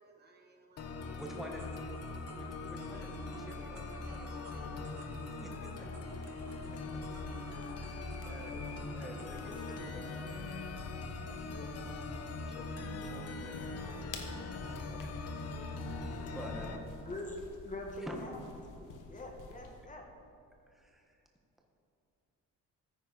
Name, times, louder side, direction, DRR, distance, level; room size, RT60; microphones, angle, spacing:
voice 1, 0.0-1.2 3.9-4.8 9.4-9.5 9.8-9.9, right 3 dB, 30° right, 2 dB, 1.4 m, -60 dB
sound 1, 0.8-16.8, left 3 dB, 50° left, 1.1 m, -41 dB
voice 2, 1.1-1.8 2.3-4.2 5.4-5.9 7.8-10.1 11.3-12.0 12.2-14.1 14.3-15.2 16.3-16.9 18.0-18.2 20.7-21.2, right 1 dB, ahead, 0 dB, 1.3 m, -49 dB
sound 2, 1.2-9.8, right 4 dB, 60° right, 2.9 m, -58 dB
sound 3, 4.7-19.9, left 4 dB, 75° left, 1.4 m, -54 dB
voice 3, 17.0-18.4 18.8-20.0, left 2 dB, 25° left, 1 dB, 1.4 m, -43 dB
14.5 x 9.6 x 4.0 m, 2.7 s
cardioid pair, 135°, 31 cm